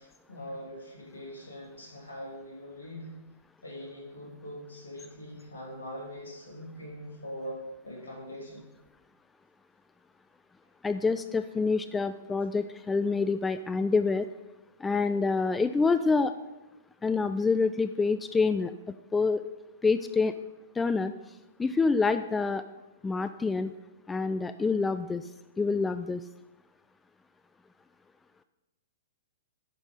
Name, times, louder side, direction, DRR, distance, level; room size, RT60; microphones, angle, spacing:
voice 1, 0.0-3.1 3.6-7.6 7.8-8.6, equal, 75° left, -2 dB, 3.2 m, -42 dB
voice 2, 10.8-14.3 14.8-16.3 17.0-18.7 19.1-19.4 19.8-20.3 20.8-21.1 21.6-22.6 23.0-23.7 24.1-25.2 25.6-26.2, left 4 dB, 10° left, 11 dB, 0.3 m, -26 dB
9.9 x 5.2 x 5.4 m, 1.0 s
figure-of-eight pair, 110°, 0 cm